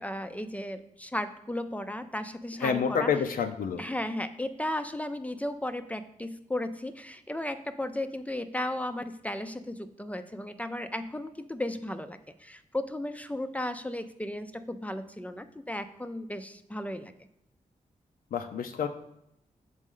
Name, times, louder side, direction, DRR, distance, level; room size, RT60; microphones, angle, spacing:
voice 1, 0.0-3.1 3.8-17.1, left 1 dB, 10° left, 9 dB, 0.4 m, -35 dB
voice 2, 2.6-3.8 18.3-18.9, left 6 dB, 85° left, 6 dB, 0.5 m, -28 dB
6.3 x 4.1 x 3.6 m, 0.81 s
wide cardioid pair, 90°, 14 cm